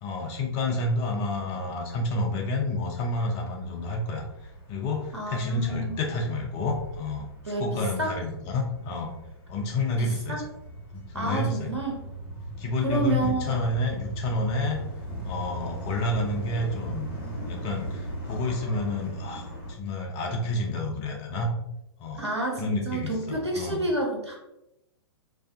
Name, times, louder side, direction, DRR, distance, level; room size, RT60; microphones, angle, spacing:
voice 1, 0.0-4.2 4.7-7.3 7.6-9.1 9.5-10.4 10.9-11.7 12.6-14.8 15.2-17.1 17.5-21.5 22.0-22.3 22.6-23.8, left 2 dB, 30° left, 0 dB, 0.5 m, -29 dB
sound 1, 1.0-19.7, right 1 dB, 45° left, 1.1 m, -40 dB
voice 2, 5.1-6.0 7.4-8.2 10.0-10.4 11.1-12.0 12.8-13.6 22.2-24.4, right 2 dB, 80° right, 0 dB, 0.8 m, -29 dB
2.5 x 2.3 x 2.4 m, 0.86 s
figure-of-eight pair, 110°, 14 cm